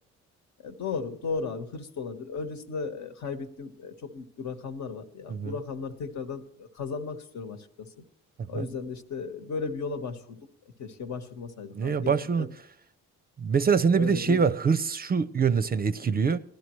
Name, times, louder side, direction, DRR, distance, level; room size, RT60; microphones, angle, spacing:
voice 1, 0.6-7.9 8.5-10.4 10.8-12.5 13.9-14.4, left 5 dB, 70° left, 1.4 m, -35 dB
voice 2, 11.7-12.5 13.4-16.4, right 6 dB, 30° right, 0.5 m, -24 dB
17.0 x 12.0 x 3.1 m
cardioid pair, 90°, 30 cm